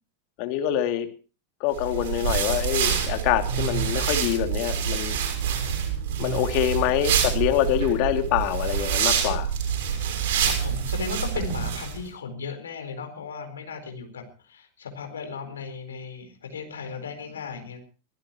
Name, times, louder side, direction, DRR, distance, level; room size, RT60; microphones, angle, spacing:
voice 1, 0.4-1.1 1.6-5.2 6.2-9.5, left 12 dB, 45° left, 5 dB, 2.7 m, -25 dB
sound 1, 1.8-12.0, right 8 dB, 50° right, 6.3 m, -26 dB
voice 2, 10.4-17.8, left 5 dB, 65° left, 6 dB, 4.3 m, -36 dB
24.5 x 16.0 x 3.1 m, 0.36 s
figure-of-eight pair, 90°, 0 cm